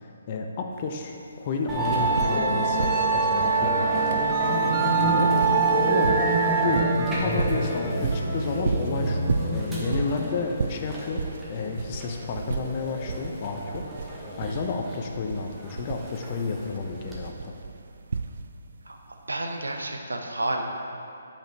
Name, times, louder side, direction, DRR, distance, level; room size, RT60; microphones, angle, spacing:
voice 1, 0.0-4.2 5.0-5.3 5.8-6.3 6.6-17.5, left 4 dB, 35° left, 3 dB, 0.6 m, -31 dB
sound 1, 0.7-0.8 1.1-2.5 2.8-18.8 19.8-19.9, right 4 dB, 60° right, 0.3 m, -33 dB
Musical instrument, 1.7-17.2, right 3 dB, 10° right, 1.1 m, -26 dB
voice 2, 19.3-20.6, right 2 dB, 80° right, 3 dB, 0.8 m, -30 dB
8.9 x 5.0 x 3.3 m, 2.6 s
figure-of-eight pair, 140°, 0 cm